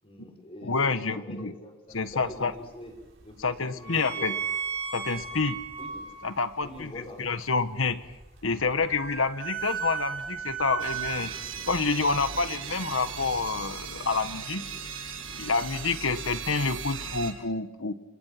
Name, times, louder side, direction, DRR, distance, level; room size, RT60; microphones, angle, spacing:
voice 1, 0.0-4.4 5.8-6.1 6.6-7.3, left 1 dB, 30° left, 2 dB, 6.0 m, -45 dB
voice 2, 0.6-1.5 1.9-2.5 3.4-4.3 4.9-5.6 6.2-6.9 7.2-8.0 8.4-11.3 11.7-14.6 15.4-17.9, left 4 dB, 80° left, 10 dB, 1.5 m, -28 dB
sound 1, 1.9-14.1, right 7 dB, 65° right, 7.6 m, -37 dB
sound 2, 10.8-17.3, right 6 dB, 80° right, 6.1 m, -38 dB
29.0 x 27.5 x 6.0 m, 1.0 s
head